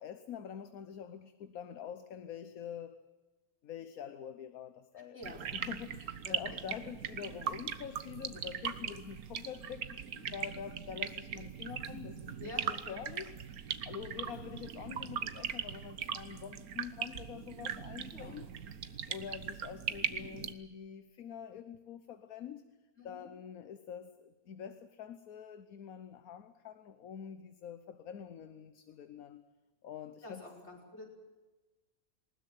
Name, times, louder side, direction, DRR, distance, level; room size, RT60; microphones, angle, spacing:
voice 1, 0.0-3.0 3.6-5.2 5.5-18.5 19.1-22.6 23.0-29.4 29.8-30.4, left 8 dB, 75° left, 11 dB, 1.4 m, -46 dB
voice 2, 5.0-5.5 6.2-6.6 8.7-9.0 12.4-12.8 14.2-14.4 18.1-18.5 23.0-23.3 30.2-31.1, left 1 dB, 50° left, 0 dB, 5.5 m, -49 dB
sound 1, 5.2-20.5, right 8 dB, 85° right, 1.6 m, -40 dB
20.0 x 19.5 x 9.2 m, 1.2 s
omnidirectional pair, 1.5 m